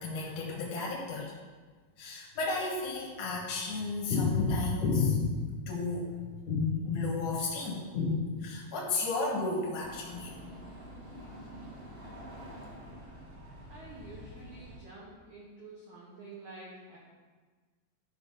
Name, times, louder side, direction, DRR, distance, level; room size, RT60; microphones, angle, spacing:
voice 1, 0.0-1.3 2.0-10.3, left 4 dB, 75° left, -2 dB, 1.8 m, -32 dB
sound 1, 9.8-14.8, equal, 45° right, 2.0 m, -47 dB
voice 2, 13.7-17.0, right 3 dB, 85° right, -5 dB, 1.7 m, -49 dB
11.5 x 5.2 x 5.5 m, 1.4 s
omnidirectional pair, 5.7 m